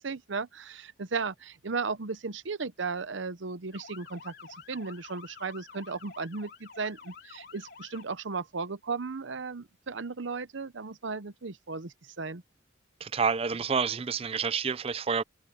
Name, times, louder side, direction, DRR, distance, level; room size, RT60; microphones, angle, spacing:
voice 1, 0.0-4.3 4.7-12.4, right 4 dB, 70° right, 0.8 m, -35 dB
Motor vehicle (road) / Siren, 3.7-8.1, left 5 dB, 55° left, 3.2 m, -49 dB
voice 2, 13.0-15.2, right 5 dB, 30° right, 0.4 m, -28 dB
head